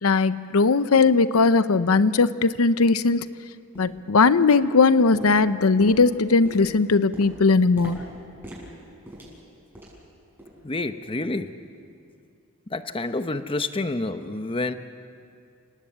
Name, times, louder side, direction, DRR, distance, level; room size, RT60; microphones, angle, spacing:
voice 1, 0.0-3.3 3.8-8.0, left 4 dB, 85° left, 13 dB, 0.7 m, -19 dB
sound 1, 1.8-1.9 2.4-2.5 3.0-3.2 3.7-4.0 4.4-4.9 5.1-10.1 10.4-10.7 11.0-11.2 11.7-11.8, equal, 10° right, 6.9 m, -43 dB
voice 2, 10.6-11.6 12.7-14.7, left 2 dB, 25° left, 10 dB, 0.8 m, -28 dB
29.0 x 18.5 x 8.8 m, 2.4 s
head